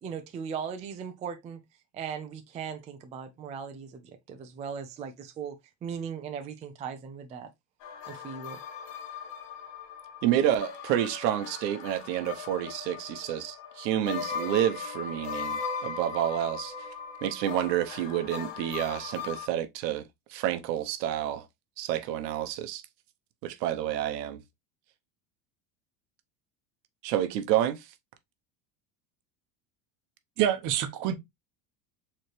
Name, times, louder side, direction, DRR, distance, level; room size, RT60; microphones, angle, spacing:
voice 1, 0.0-1.6 1.9-5.6 5.8-7.5 8.1-8.6, right 7 dB, 15° right, 0.3 m, -38 dB
sound 1, 7.8-19.5, left 6 dB, 55° left, 1.2 m, -39 dB
voice 2, 10.2-16.7 17.2-20.0 20.3-21.5 21.8-22.8 23.4-24.4 27.0-27.8, right 11 dB, 85° right, 0.9 m, -29 dB
voice 3, 30.4-31.1, right 10 dB, 40° right, 0.9 m, -26 dB
4.4 x 3.2 x 3.1 m
supercardioid pair, 130°, 49 cm